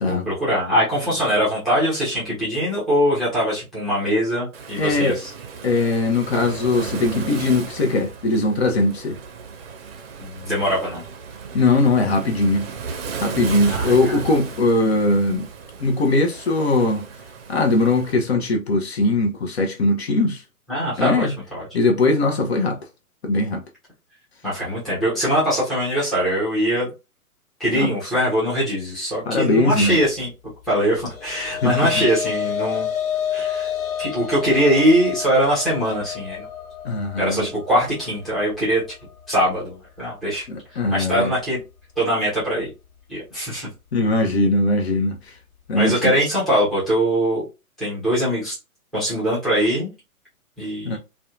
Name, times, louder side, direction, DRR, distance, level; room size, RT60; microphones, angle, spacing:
voice 1, 0.0-5.3 10.2-11.0 13.6-14.2 20.7-21.7 24.4-26.9 27.6-30.3 30.7-32.9 33.3-33.7 34.0-36.5 37.2-38.8 39.3-40.5 40.9-41.6 42.0-42.7 43.1-43.7 45.8-47.4 47.8-48.6 48.9-49.9 50.6-51.0, equal, ahead, 0.6 m, -22 dB
Waves surf, 4.5-18.1, right 5 dB, 45° right, 0.6 m, -35 dB
voice 2, 4.8-5.2 5.6-9.2 11.5-12.7 13.2-15.5 15.8-17.0 17.5-20.4 21.0-21.3 21.7-22.8 23.2-23.6 27.8-27.9 29.3-30.0 31.6-32.0 36.8-37.4 40.5-41.3 43.9-45.2 45.7-46.1 50.8-51.0, left 2 dB, 45° left, 0.6 m, -20 dB
sound 1, 30.9-39.5, left 9 dB, 65° left, 1.2 m, -29 dB
2.6 x 2.2 x 2.4 m
figure-of-eight pair, 125°, 44 cm